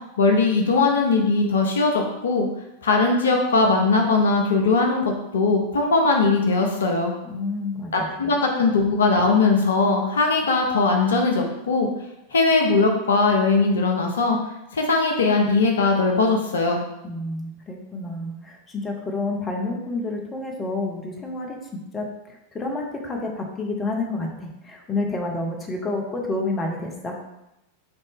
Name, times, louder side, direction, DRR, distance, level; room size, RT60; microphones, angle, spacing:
voice 1, 0.2-2.5 2.8-7.1 7.9-11.9 12.3-14.4 14.7-16.8, left 3 dB, 65° left, 2 dB, 0.5 m, -20 dB
voice 2, 7.2-8.1 17.0-27.2, left 2 dB, 20° left, 1 dB, 0.7 m, -29 dB
4.1 x 2.6 x 3.5 m, 0.89 s
figure-of-eight pair, 90°, 0 cm